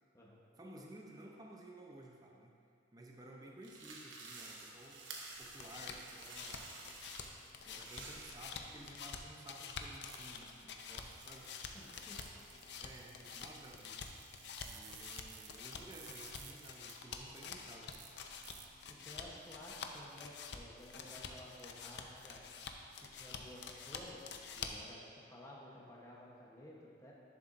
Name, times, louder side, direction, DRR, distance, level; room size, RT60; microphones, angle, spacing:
voice 1, 0.6-2.5 2.9-5.1 5.4-7.0 7.7-11.5 12.8-14.0 14.7-17.9, right 1 dB, 20° right, -1 dB, 0.7 m, -55 dB
sound 1, 3.6-16.9, right 3 dB, 80° right, 1.1 m, -55 dB
sound 2, 5.3-24.9, left 5 dB, 60° left, 0.5 m, -48 dB
sound 3, 10.1-10.5 10.9-11.5 11.9-12.4 13.5-13.6 13.9-15.5 15.9-16.9 17.9-18.1 18.4-18.7, right 9 dB, 60° right, 0.6 m, -56 dB
voice 2, 11.7-12.4 18.8-22.5 23.0-27.1, left 1 dB, 15° left, -4 dB, 1.0 m, -54 dB
11.0 x 6.9 x 2.6 m, 2.3 s
head